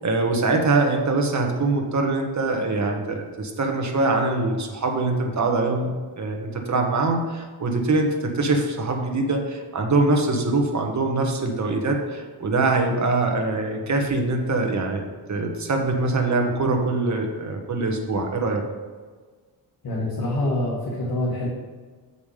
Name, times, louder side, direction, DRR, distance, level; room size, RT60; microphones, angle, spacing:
voice 1, 0.0-18.6, right 3 dB, 40° right, 2 dB, 1.2 m, -23 dB
voice 2, 19.8-21.5, left 1 dB, 50° left, -6 dB, 1.8 m, -25 dB
7.0 x 5.5 x 5.0 m, 1.4 s
wide cardioid pair, 115°, 43 cm